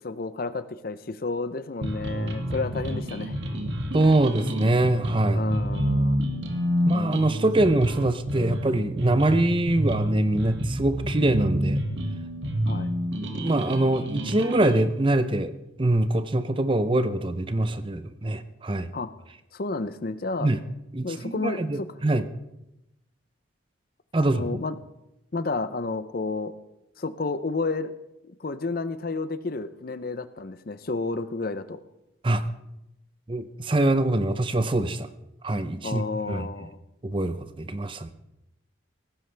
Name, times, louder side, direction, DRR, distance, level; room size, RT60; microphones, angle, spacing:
voice 1, 0.0-3.4 5.3-6.2 12.7-12.9 18.9-19.1 19.5-20.5 21.0-21.9 24.2-24.8 25.3-26.5 27.0-27.9 28.3-31.8 35.8-36.8, left 3 dB, 45° left, 13 dB, 0.6 m, -31 dB
sound 1, 1.8-14.8, equal, 65° right, 1.8 m, -28 dB
voice 2, 3.9-5.4 6.9-11.8 13.3-15.5 15.8-18.9 20.4-20.6 20.9-22.3 24.1-24.4 32.2-32.4 33.3-35.1 35.4-36.5 37.0-38.1, right 2 dB, 25° right, 11 dB, 0.6 m, -24 dB
17.5 x 15.0 x 3.4 m, 0.89 s
head